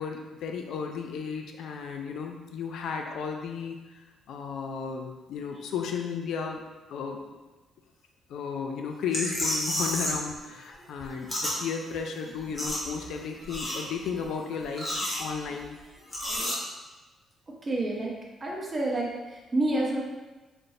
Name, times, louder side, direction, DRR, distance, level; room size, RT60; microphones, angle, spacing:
voice 1, 0.0-3.8 4.3-6.6 6.9-7.2 8.3-14.9 15.2-15.8, left 6 dB, 75° left, 3 dB, 0.3 m, -34 dB
sound 1, 9.1-10.3 10.5-11.6 11.9-12.0 12.2-13.1 13.4-14.1 14.6-15.6 16.1-16.5, equal, 20° left, 0.9 m, -31 dB
voice 2, 17.6-18.1 18.4-20.0, right 2 dB, 30° right, -2 dB, 0.7 m, -28 dB
3.1 x 2.6 x 2.7 m, 1.2 s
cardioid pair, 90°, 0 cm